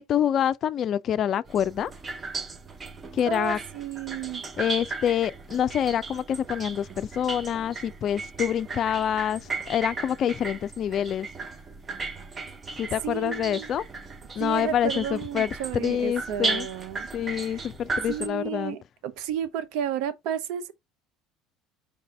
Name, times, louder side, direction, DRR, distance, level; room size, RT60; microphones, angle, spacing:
voice 1, 0.0-1.9 3.1-3.6 4.6-11.3 12.8-13.8 14.4-16.7 17.1-18.8, left 9 dB, 50° left, 0.4 m, -26 dB
sound 1, 1.5-18.3, right 3 dB, 30° right, 0.7 m, -36 dB
voice 2, 3.3-4.4 13.0-13.7 14.4-17.1 17.3-17.6 18.1-20.7, right 9 dB, 70° right, 0.7 m, -32 dB
4.8 x 2.6 x 4.1 m
hypercardioid pair, 80°, 0 cm